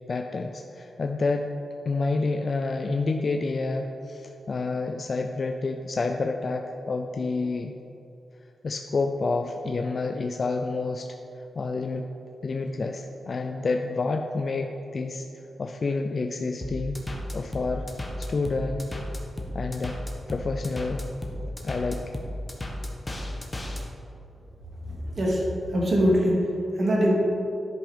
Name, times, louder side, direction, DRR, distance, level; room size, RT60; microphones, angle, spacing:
voice 1, 0.1-1.5 1.9-7.8 8.6-11.2 11.6-12.1 12.4-17.0 17.3-17.9 18.2-18.9 19.5-20.0 20.3-21.0 21.6-22.1, left 3 dB, 45° left, 4 dB, 0.4 m, -29 dB
sound 1, 16.6-23.8, left 1 dB, 20° left, 1.2 m, -34 dB
voice 2, 24.8-27.1, equal, 50° right, -3 dB, 2.1 m, -23 dB
10.5 x 5.3 x 5.0 m, 2.7 s
wide cardioid pair, 110°, 0 cm